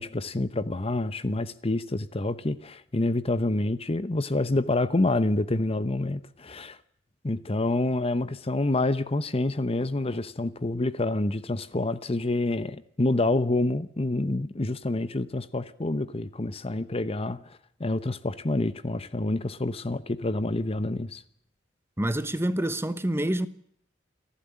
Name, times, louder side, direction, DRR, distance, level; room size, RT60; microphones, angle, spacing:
voice 1, 0.0-6.8 7.2-21.2, left 2 dB, 30° left, 0.9 m, -27 dB
voice 2, 22.0-23.5, right 1 dB, 15° right, 1.1 m, -27 dB
29.0 x 11.5 x 9.8 m
head